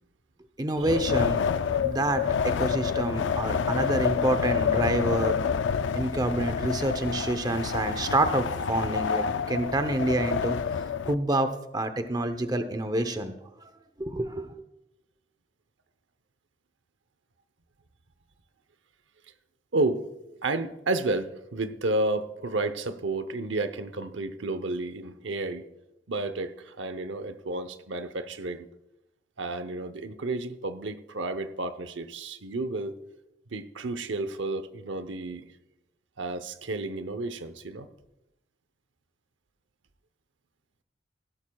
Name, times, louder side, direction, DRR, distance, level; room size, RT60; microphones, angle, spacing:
voice 1, 0.6-1.4 1.8-5.4 5.9-10.6 11.1-13.3 14.0-14.5, right 1 dB, 20° right, 9 dB, 0.7 m, -27 dB
Wind, 0.8-11.1, left 6 dB, 85° left, 0.4 m, -28 dB
voice 2, 19.7-20.1 20.4-25.6 26.1-28.7 29.4-33.0 33.5-35.4 36.2-37.9, right 2 dB, 85° right, 11 dB, 0.8 m, -31 dB
16.5 x 12.0 x 2.3 m, 0.91 s
head